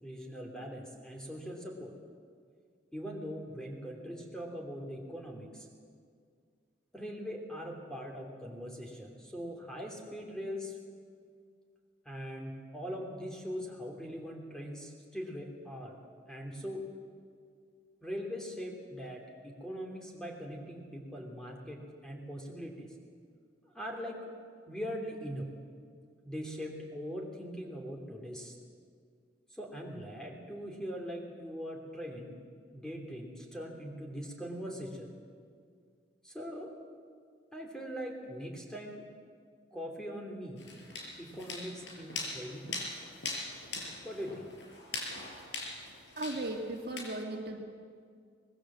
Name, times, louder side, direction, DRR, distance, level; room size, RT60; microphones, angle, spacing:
voice 1, 0.0-1.9 2.9-5.7 6.9-10.8 12.0-15.9 16.3-16.9 18.0-22.9 23.6-24.3 24.7-25.5 26.2-28.6 29.5-32.4 32.7-35.1 36.2-36.7 37.5-39.0 39.7-40.8 41.2-42.8 44.0-44.5, equal, 5° left, 1 dB, 3.1 m, -41 dB
sound 1, 40.6-47.0, left 2 dB, 75° left, 5.2 m, -41 dB
voice 2, 46.2-47.6, right 2 dB, 55° right, 2 dB, 2.2 m, -36 dB
24.5 x 20.5 x 7.6 m, 2.1 s
head